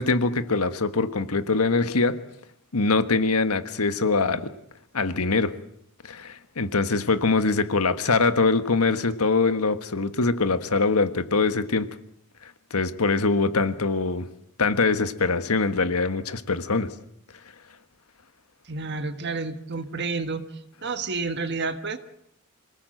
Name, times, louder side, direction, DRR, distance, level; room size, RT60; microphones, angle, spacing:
voice 1, 0.0-2.2 2.7-4.5 4.9-5.5 6.0-11.9 12.7-14.3 14.6-16.9, left 3 dB, 85° left, 1.5 m, -23 dB
voice 2, 18.7-20.5 20.8-22.0, right 4 dB, 50° right, 1.6 m, -30 dB
26.5 x 18.5 x 7.8 m
head